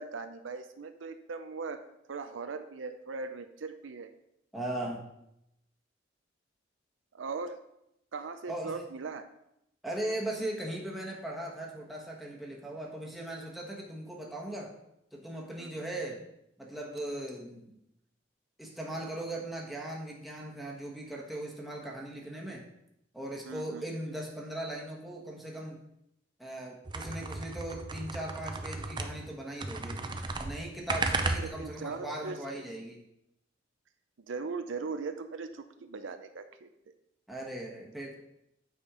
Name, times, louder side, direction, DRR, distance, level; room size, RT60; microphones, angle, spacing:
voice 1, 0.0-1.8 2.1-4.1 7.1-7.6 8.1-9.3 15.6-15.7 23.4-23.8 31.4-32.6 34.3-36.7, right 4 dB, 75° right, 9 dB, 0.5 m, -39 dB
voice 2, 4.5-5.0 8.5-8.8 9.8-14.7 15.1-16.2 16.6-17.7 18.6-22.7 23.1-25.8 26.4-30.0 30.4-33.0 37.3-38.1, right 1 dB, ahead, -3 dB, 1.3 m, -38 dB
sound 1, 26.8-29.3 29.6-31.8, right 3 dB, 25° right, 0.6 m, -34 dB
8.5 x 4.4 x 4.9 m, 0.81 s
head